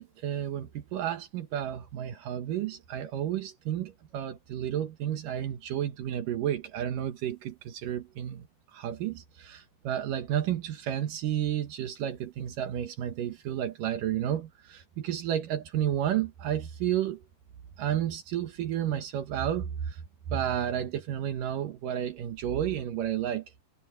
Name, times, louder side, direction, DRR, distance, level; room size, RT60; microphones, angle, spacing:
voice 1, 0.0-8.5 8.7-17.2 17.8-20.0 20.3-23.5, right 10 dB, 85° right, 1.9 m, -31 dB
omnidirectional pair, 5.9 m